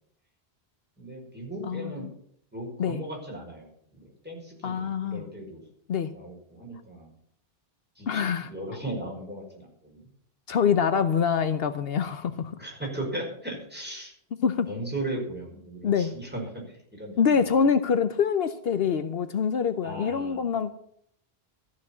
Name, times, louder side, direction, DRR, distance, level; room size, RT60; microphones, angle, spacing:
voice 1, 1.0-2.1 2.5-5.6 6.1-7.1 8.0-10.1 12.6-14.1 14.7-17.7 19.8-20.4, right 1 dB, 10° right, -2 dB, 5.2 m, -37 dB
voice 2, 1.6-2.1 2.8-3.0 4.6-5.2 5.9-6.1 8.1-8.5 10.5-12.5 14.4-14.7 15.8-16.1 17.2-20.7, left 6 dB, 70° left, 10 dB, 1.0 m, -25 dB
14.0 x 6.4 x 9.6 m, 0.68 s
omnidirectional pair, 1.0 m